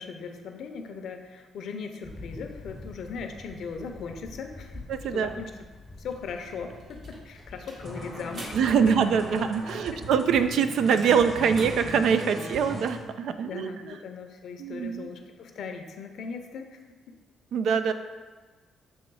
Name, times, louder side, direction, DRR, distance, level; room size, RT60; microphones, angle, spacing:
voice 1, 0.0-5.5 6.0-8.5 8.8-9.0 9.4-9.5 13.5-16.8, left 5 dB, 70° left, 5 dB, 0.6 m, -38 dB
Thunder, 2.0-10.3, left 2 dB, 15° left, 0.7 m, -47 dB
voice 2, 4.9-5.3 8.5-13.7 14.6-15.1 17.5-17.9, right 6 dB, 75° right, 9 dB, 0.4 m, -24 dB
sound 1, 6.1-9.8 10.1-12.0, right 1 dB, 55° right, 1.5 m, -46 dB
sound 2, 7.8-13.0, equal, 35° right, 1.3 m, -39 dB
7.0 x 3.1 x 4.7 m, 1.4 s
cardioid pair, 90°, 0 cm